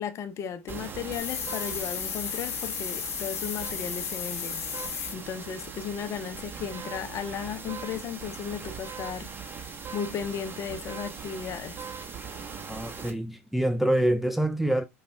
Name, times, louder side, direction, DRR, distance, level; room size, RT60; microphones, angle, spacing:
voice 1, 0.0-9.3 9.9-11.9, left 7 dB, 40° left, 0.6 m, -35 dB
sound 1, 0.7-13.1, right 5 dB, 25° right, 1.3 m, -40 dB
sound 2, 1.1-5.2, left 8 dB, 80° left, 0.7 m, -34 dB
voice 2, 12.7-14.8, right 1 dB, ahead, 0.3 m, -26 dB
5.1 x 2.3 x 3.3 m
hypercardioid pair, 95°, 8 cm